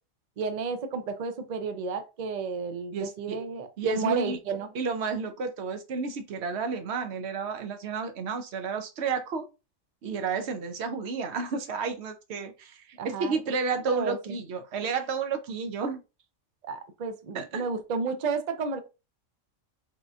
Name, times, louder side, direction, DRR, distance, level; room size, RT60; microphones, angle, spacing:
voice 1, 0.4-4.7 13.0-13.4 13.7-14.4 16.6-18.8, right 4 dB, 90° right, 0.3 m, -32 dB
voice 2, 2.9-3.4 3.8-4.4 4.7-9.5 10.0-16.0 17.3-17.7, right 4 dB, 60° right, 0.8 m, -31 dB
3.7 x 3.7 x 2.4 m
omnidirectional pair, 1.5 m